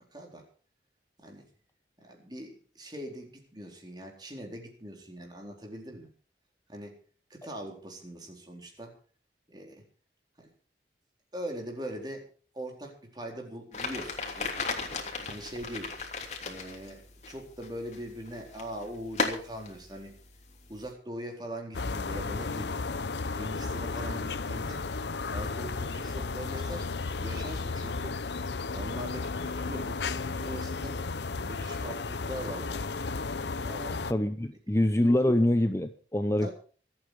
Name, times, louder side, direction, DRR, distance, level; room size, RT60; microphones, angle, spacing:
voice 1, 0.1-0.4 1.2-1.5 2.0-6.1 6.7-7.0 7.3-8.9 9.5-9.8 10.4-10.5 11.3-12.3 12.5-14.5 15.3-15.9 16.4-20.1 20.7-22.7 23.3-24.8 25.3-28.2 28.7-31.0 31.4-33.0 33.6-34.0 36.4-36.5, right 1 dB, 25° right, 1 dB, 4.2 m, -41 dB
sound 1, 13.7-20.9, left 4 dB, 40° left, 3.1 m, -37 dB
sound 2, 21.7-34.1, left 4 dB, 80° left, 0.8 m, -34 dB
voice 2, 34.1-36.5, left 1 dB, 15° left, 9 dB, 0.7 m, -25 dB
25.5 x 9.0 x 4.9 m, 0.40 s
head